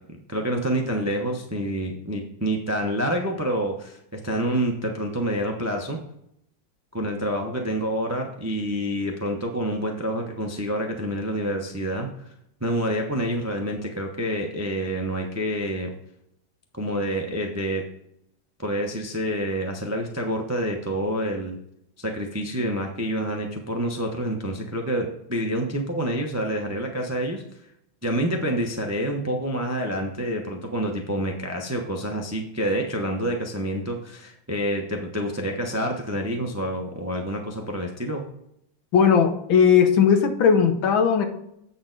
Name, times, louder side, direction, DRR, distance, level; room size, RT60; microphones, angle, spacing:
voice 1, 0.3-6.0 6.9-12.1 12.6-15.9 16.7-17.8 18.6-21.6 22.0-27.4 28.0-38.2, equal, 15° right, 2 dB, 0.5 m, -27 dB
voice 2, 38.9-41.3, left 7 dB, 75° left, 6 dB, 1.8 m, -18 dB
8.5 x 6.6 x 4.0 m, 0.75 s
omnidirectional pair, 2.2 m